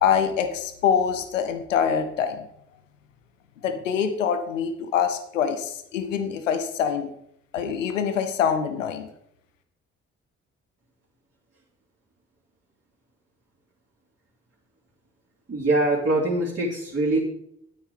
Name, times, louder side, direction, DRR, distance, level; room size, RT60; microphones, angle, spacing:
voice 1, 0.0-2.5 3.6-7.1 7.5-9.1, left 7 dB, 90° left, 9 dB, 0.8 m, -25 dB
voice 2, 15.5-17.2, right 2 dB, 35° right, -7 dB, 3.1 m, -23 dB
9.0 x 9.0 x 5.0 m, 0.75 s
figure-of-eight pair, 40°, 37 cm